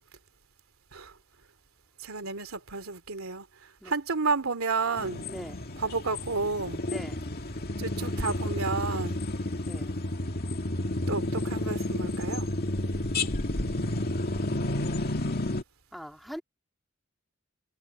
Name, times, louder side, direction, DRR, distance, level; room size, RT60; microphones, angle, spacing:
voice 1, 2.0-3.5 3.8-5.3 5.8-6.8 7.8-9.2 11.1-12.5, right 4 dB, 90° right, 2.8 m, -31 dB
sound 1, 5.0-15.6, left 1 dB, 50° left, 2.1 m, -31 dB
voice 2, 5.2-5.6 6.8-7.3 9.6-10.0 15.9-16.4, equal, ahead, 2.6 m, -42 dB
head